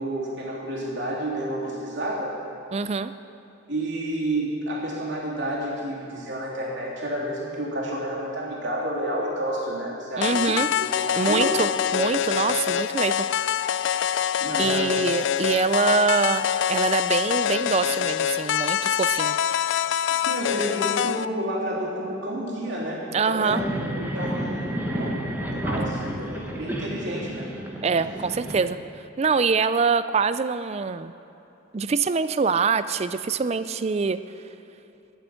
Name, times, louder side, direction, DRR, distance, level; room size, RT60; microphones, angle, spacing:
voice 1, 0.0-2.4 3.7-11.6 14.4-15.0 20.1-27.5, right 1 dB, 60° right, -4 dB, 3.2 m, -30 dB
voice 2, 2.7-3.1 10.2-10.7 11.2-13.2 14.6-19.4 23.1-23.6 27.8-28.8 29.2-31.1 31.7-34.2, right 5 dB, 30° right, 13 dB, 0.3 m, -24 dB
sound 1, 10.2-21.2, left 9 dB, 60° left, 0.3 m, -25 dB
sound 2, 23.5-28.6, right 1 dB, 10° right, 1.2 m, -30 dB
12.0 x 8.0 x 10.0 m, 3.0 s
head